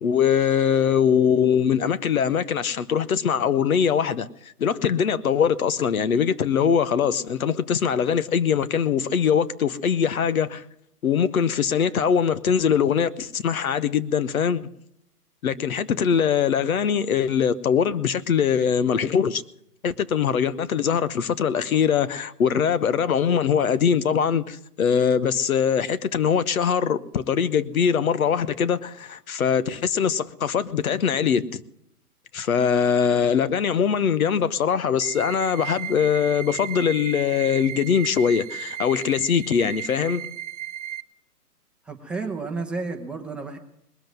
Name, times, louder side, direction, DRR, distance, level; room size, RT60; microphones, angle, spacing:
voice 1, 0.0-10.6 11.0-14.6 15.4-19.4 19.8-31.6 32.3-40.3, left 7 dB, 65° left, 1.0 m, -22 dB
sound 1, 35.0-41.0, right 11 dB, 50° right, 0.8 m, -35 dB
voice 2, 41.8-43.6, right 4 dB, ahead, 1.1 m, -31 dB
20.5 x 7.8 x 9.1 m
hypercardioid pair, 145°, 47 cm